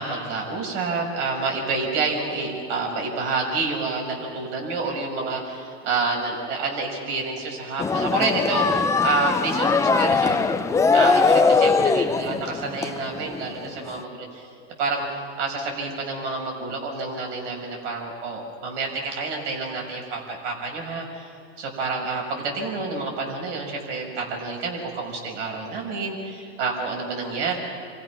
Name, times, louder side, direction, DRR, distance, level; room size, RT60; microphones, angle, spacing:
voice 1, 0.0-10.5 10.9-14.5 14.8-15.0 15.4-27.6, right 3 dB, 70° right, 0 dB, 6.3 m, -28 dB
sound 1, 7.8-13.6 14.0-14.1, left 4 dB, 10° left, 0.6 m, -21 dB
29.0 x 24.0 x 6.0 m, 2.4 s
supercardioid pair, 125°, 37 cm